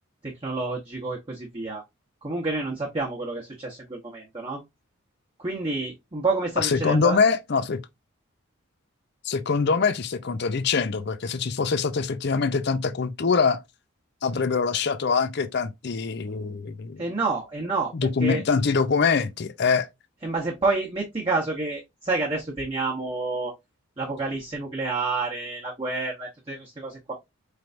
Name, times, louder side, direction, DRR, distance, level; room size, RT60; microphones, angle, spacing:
voice 1, 0.2-1.8 2.2-4.6 5.4-7.2 17.0-18.4 20.2-23.5 24.0-27.1, right 3 dB, 25° right, 0.9 m, -29 dB
voice 2, 6.6-7.8 9.2-13.6 14.2-17.0 17.9-19.9, left 5 dB, 50° left, 0.5 m, -24 dB
4.5 x 3.3 x 2.5 m
head